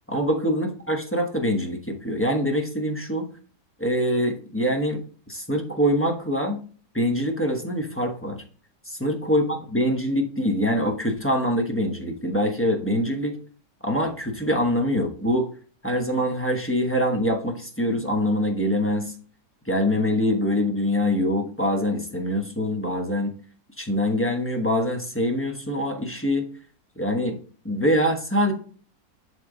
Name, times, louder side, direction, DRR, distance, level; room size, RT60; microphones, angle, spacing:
voice 1, 0.1-3.3 3.8-5.0 5.3-6.6 6.9-8.4 8.9-13.4 13.8-15.5 15.8-19.1 19.7-23.3 23.8-26.5 27.0-27.4 27.6-28.5, equal, 10° left, 2 dB, 0.9 m, -24 dB
10.5 x 3.7 x 3.9 m, 0.41 s
omnidirectional pair, 1.7 m